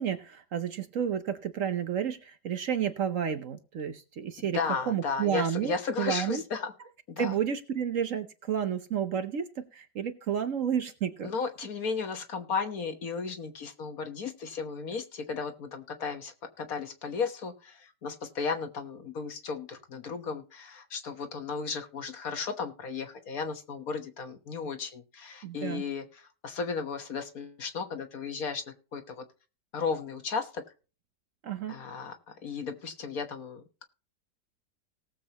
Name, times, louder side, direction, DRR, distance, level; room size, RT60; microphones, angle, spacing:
voice 1, 0.0-4.6 4.9-5.7 6.0-6.4 7.2-11.3 25.4-25.8 31.4-31.8, right 8 dB, 60° right, 1.0 m, -31 dB
voice 2, 4.4-6.7 7.1-7.4 11.2-29.2 29.7-30.6 31.7-33.8, left 5 dB, 60° left, 1.6 m, -35 dB
18.5 x 7.4 x 2.9 m
omnidirectional pair, 1.8 m